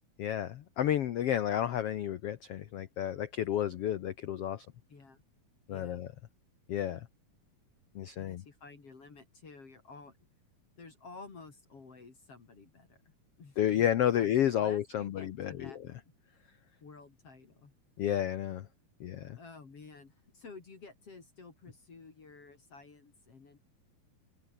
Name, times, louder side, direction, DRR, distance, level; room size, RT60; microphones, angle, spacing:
voice 1, 0.2-4.7 5.7-6.1 6.7-7.0 7.9-8.4 13.6-15.7 18.0-18.7 19.0-19.4, left 11 dB, 85° left, 1.3 m, -31 dB
voice 2, 4.9-5.2 5.7-6.0 8.2-10.2 10.8-13.1 13.4-13.9 14.2-15.8 16.8-17.8 19.3-23.6, left 4 dB, 40° left, 4.2 m, -52 dB
omnidirectional pair, 4.1 m